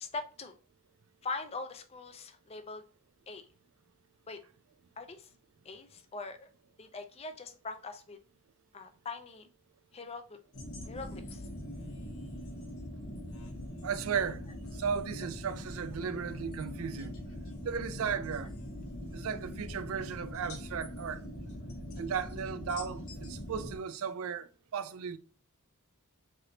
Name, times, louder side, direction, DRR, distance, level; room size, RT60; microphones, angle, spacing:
voice 1, 0.0-0.5 1.2-2.8 3.3-3.4 4.3-4.4 5.0-5.3 5.7-6.5 6.8-8.2 8.7-9.5 9.9-10.4 10.9-11.4, left 3 dB, 25° left, 0.4 m, -42 dB
sound 1, 10.5-23.8, left 1 dB, 70° left, 1.0 m, -42 dB
voice 2, 13.8-14.5 14.7-17.2 17.6-18.5 19.1-21.2 22.0-25.2, right 6 dB, 70° right, 0.4 m, -35 dB
3.8 x 3.4 x 2.7 m
head